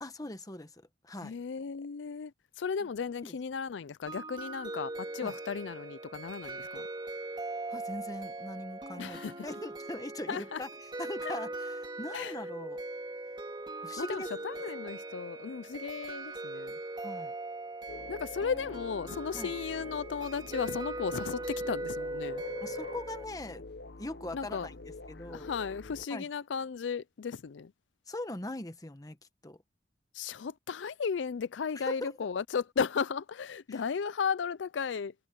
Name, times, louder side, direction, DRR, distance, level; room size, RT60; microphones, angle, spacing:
voice 1, 0.0-1.3 3.2-3.3 5.2-5.3 7.7-10.7 11.0-12.8 13.8-14.3 17.0-17.3 19.4-19.5 22.6-23.6 24.0-24.7 25.1-25.5 26.1-26.3 28.1-29.2 29.4-29.6 31.8-32.2 33.7-33.8, left 1 dB, 20° left, 1.2 m, -41 dB
voice 2, 1.2-2.3 2.6-6.9 9.0-9.5 10.3-10.6 11.2-11.3 12.1-12.3 14.0-16.8 18.1-22.4 24.3-24.7 25.2-27.7 30.1-35.1, left 6 dB, 80° left, 0.4 m, -35 dB
sound 1, 4.1-23.2, right 2 dB, 25° right, 2.8 m, -40 dB
sound 2, 17.9-26.1, left 2 dB, 60° left, 0.8 m, -46 dB
head